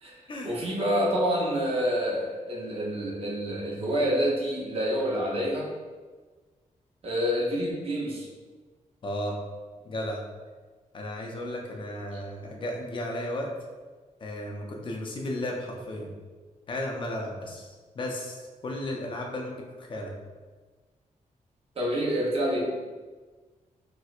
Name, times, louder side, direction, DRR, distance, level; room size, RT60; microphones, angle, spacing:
voice 1, 0.4-5.7 7.0-8.2 21.8-22.7, equal, 45° right, -4 dB, 0.7 m, -27 dB
voice 2, 9.0-9.4 9.8-10.2 10.9-13.5 14.2-16.1 16.7-20.1, left 1 dB, 40° left, 0 dB, 0.5 m, -34 dB
4.3 x 2.2 x 2.4 m, 1.4 s
wide cardioid pair, 140°, 13 cm